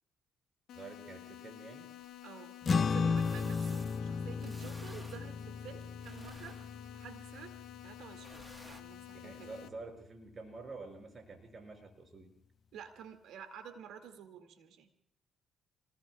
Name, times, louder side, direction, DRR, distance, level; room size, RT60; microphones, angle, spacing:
sound 1, 0.7-9.7, left 14 dB, 80° left, 1.2 m, -51 dB
voice 1, 0.7-1.9 9.1-12.3, right 3 dB, 40° right, 3 dB, 5.5 m, -48 dB
sound 2, 2.0-2.1 3.2-4.0 4.4-5.2 5.8-6.9 8.2-8.8, right 1 dB, 10° right, 1.2 m, -55 dB
voice 2, 2.2-6.6 6.9-7.5 7.8-9.5 12.7-15.0, right 8 dB, 85° right, 7 dB, 2.0 m, -50 dB
sound 3, 2.6-9.3, left 5 dB, 45° left, 0.8 m, -35 dB
29.5 x 20.0 x 2.3 m, 0.69 s
cardioid pair, 90°, 0 cm